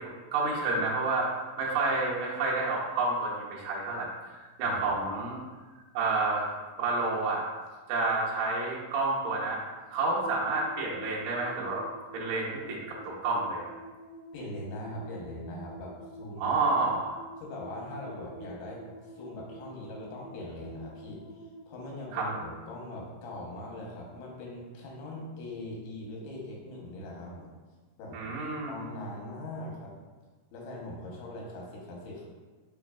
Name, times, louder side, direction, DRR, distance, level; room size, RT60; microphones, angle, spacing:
voice 1, 0.0-4.1 4.6-5.4 5.9-6.5 6.8-7.4 7.9-9.6 9.9-11.8 12.1-13.7 16.4-17.2 22.1-22.3 28.1-28.7, right 3 dB, 85° right, -5 dB, 1.6 m, -29 dB
voice 2, 4.6-5.0 14.3-16.5 17.4-18.8 19.1-21.2 21.7-27.5 28.0-28.2 28.7-29.9 30.5-32.2, left 1 dB, 90° left, -3 dB, 2.6 m, -41 dB
sound 1, 10.2-22.7, equal, 70° left, 1.5 m, -48 dB
5.7 x 2.4 x 2.2 m, 1.3 s
omnidirectional pair, 4.3 m